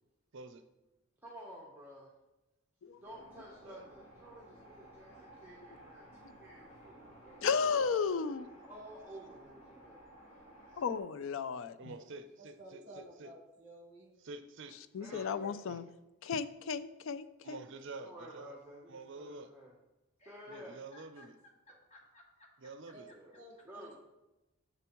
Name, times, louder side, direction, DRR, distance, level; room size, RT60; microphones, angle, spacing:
voice 1, 1.2-2.1 3.0-7.8 8.6-10.1 15.0-15.6 18.0-19.7 20.3-20.8 23.1-24.0, right 1 dB, 10° right, 0.8 m, -52 dB
sound 1, 3.0-11.0, right 1 dB, 80° left, 2.4 m, -56 dB
voice 2, 7.4-8.5 10.8-11.9 14.9-15.8 16.2-17.6, left 5 dB, 65° left, 0.4 m, -34 dB
voice 3, 11.8-13.3 14.2-14.7 15.1-15.3 15.7-15.8 17.4-18.6 18.9-19.5 20.5-21.4 22.6-23.1, right 3 dB, 55° right, 0.5 m, -48 dB
voice 4, 12.4-14.2 22.9-23.0 23.3-24.0, right 1 dB, 35° right, 1.2 m, -53 dB
voice 5, 20.2-23.1, left 2 dB, 30° left, 1.2 m, -61 dB
7.0 x 6.9 x 3.0 m
head